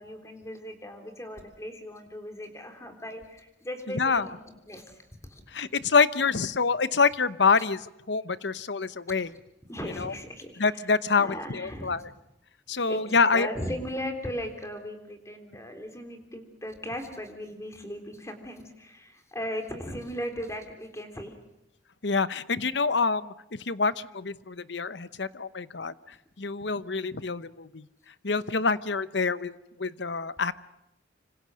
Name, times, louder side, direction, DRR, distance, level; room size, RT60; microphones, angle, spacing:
voice 1, 0.0-5.4 9.7-10.9 11.2-12.0 12.9-21.4, equal, 15° left, 5 dB, 3.6 m, -38 dB
voice 2, 3.9-4.3 5.5-9.3 10.0-10.1 10.6-12.1 12.7-13.5 22.0-25.9 26.4-27.9 28.2-30.5, left 4 dB, 70° left, 15 dB, 0.9 m, -26 dB
26.0 x 26.0 x 6.4 m, 0.87 s
head